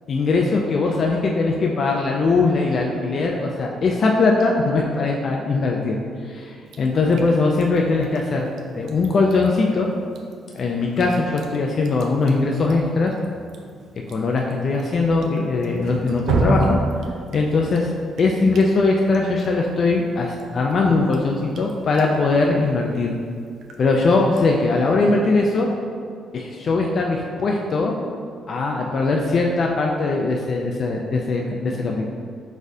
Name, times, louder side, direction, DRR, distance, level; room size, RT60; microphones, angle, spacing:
voice 1, 0.1-6.0 6.3-9.9 10.5-13.1 14.1-16.8 17.3-17.9 18.2-23.1 23.8-25.7 26.3-27.9 28.5-32.1, left 3 dB, 50° left, 0 dB, 0.4 m, -20 dB
Drip, 6.7-24.9, right 2 dB, 75° right, 0.4 m, -33 dB
4.8 x 4.0 x 2.7 m, 2.2 s
cardioid pair, 90°, 0 cm